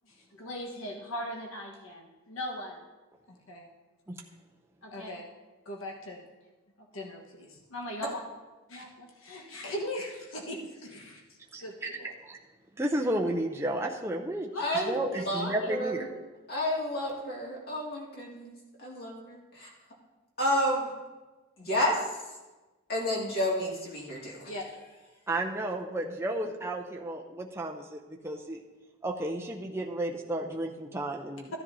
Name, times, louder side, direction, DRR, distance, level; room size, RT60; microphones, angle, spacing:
voice 1, 0.0-2.8 3.3-3.7 4.8-5.3 5.6-6.2 6.8-8.2 8.7-11.2 11.6-12.1 14.5-14.7 15.4-15.6 24.4-24.6, left 1 dB, 70° left, 0 dB, 1.3 m, -39 dB
voice 2, 12.8-14.5 14.9-16.1 25.3-28.6 29.0-31.5, right 1 dB, 10° right, 0 dB, 0.5 m, -32 dB
voice 3, 14.6-16.0 16.5-18.5 18.8-19.7 20.4-20.9 21.6-22.0 22.9-24.5, equal, 45° left, -3 dB, 2.3 m, -30 dB
14.5 x 10.0 x 2.7 m, 1.2 s
head